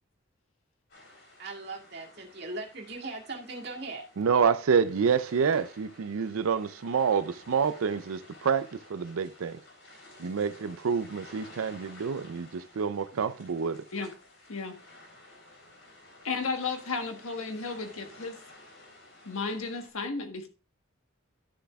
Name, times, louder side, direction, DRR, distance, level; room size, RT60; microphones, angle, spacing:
sound 1, 0.9-19.9, left 2 dB, 65° left, 3.7 m, -53 dB
voice 1, 1.4-4.0, right 3 dB, 50° right, 2.0 m, -39 dB
voice 2, 4.2-9.6 10.2-13.8, right 6 dB, 85° right, 0.5 m, -28 dB
voice 3, 16.2-18.4 19.2-20.5, left 4 dB, 90° left, 1.4 m, -33 dB
11.5 x 6.9 x 2.3 m
head